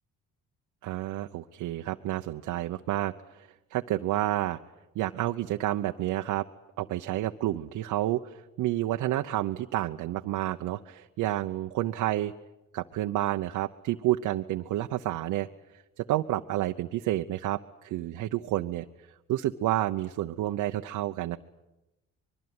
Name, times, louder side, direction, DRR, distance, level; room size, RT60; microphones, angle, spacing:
voice 1, 0.8-4.6 4.9-6.5 6.8-12.3 12.7-15.5 16.0-18.8 19.3-21.4, right 14 dB, 90° right, 5 dB, 0.9 m, -30 dB
25.0 x 22.0 x 9.6 m, 0.97 s
cardioid pair, 90°, 30 cm